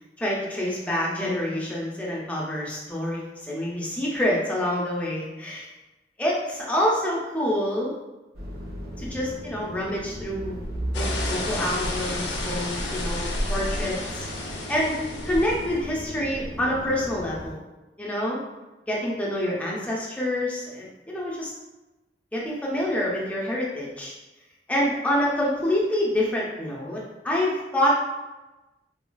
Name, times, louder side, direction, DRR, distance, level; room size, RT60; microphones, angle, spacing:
voice 1, 0.2-5.7 6.2-7.9 9.0-10.6 10.9-14.2 14.7-15.0 15.2-17.6 18.0-18.4 18.9-21.5 22.3-24.1 24.7-27.9, left 1 dB, 10° left, -5 dB, 0.5 m, -27 dB
sound 1, 8.3-17.5, equal, 60° right, 0.5 m, -34 dB
sound 2, 10.9-15.7, left 2 dB, 85° left, 0.5 m, -33 dB
3.1 x 2.3 x 2.2 m, 1.1 s
head